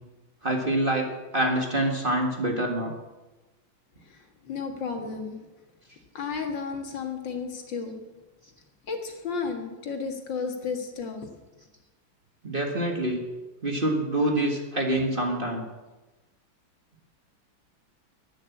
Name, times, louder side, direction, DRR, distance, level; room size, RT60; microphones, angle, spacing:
voice 1, 0.4-2.9 12.4-13.2 13.6-15.6, right 1 dB, 25° right, 1 dB, 1.7 m, -26 dB
voice 2, 4.0-5.4 6.1-8.1 8.9-11.3, left 5 dB, 60° left, 4 dB, 2.3 m, -33 dB
11.0 x 10.0 x 8.5 m, 1.1 s
omnidirectional pair, 2.3 m